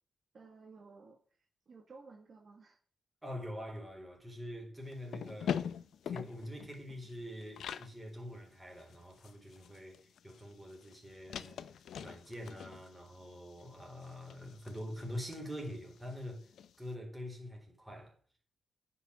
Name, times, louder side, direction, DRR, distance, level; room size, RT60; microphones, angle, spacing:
voice 1, 0.3-2.8, right 4 dB, 50° right, 1.9 m, -56 dB
voice 2, 3.2-5.8 6.1-11.7 12.0-16.5 16.8-18.2, equal, 10° right, 3.9 m, -45 dB
sound 1, 4.9-7.9 8.3-8.4 8.7-16.7, left 8 dB, 90° left, 0.7 m, -44 dB
9.7 x 5.7 x 8.0 m
wide cardioid pair, 120°, 0 cm